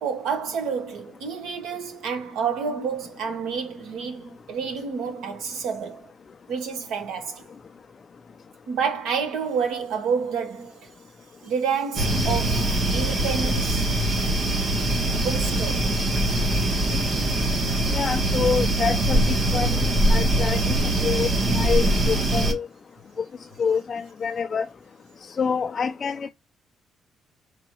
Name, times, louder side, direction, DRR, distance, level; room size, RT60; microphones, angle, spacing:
voice 1, 0.0-6.1 6.5-7.5 8.7-10.9 11.4-13.9 15.2-15.9, right 6 dB, 90° right, 1.2 m, -29 dB
sound 1, 12.0-22.5, right 1 dB, 40° right, 1.1 m, -22 dB
voice 2, 17.9-20.8 21.0-21.3 21.5-22.7 23.6-24.7 25.4-26.3, left 6 dB, 30° left, 0.4 m, -26 dB
4.8 x 3.5 x 3.0 m
cardioid pair, 175°, 0 cm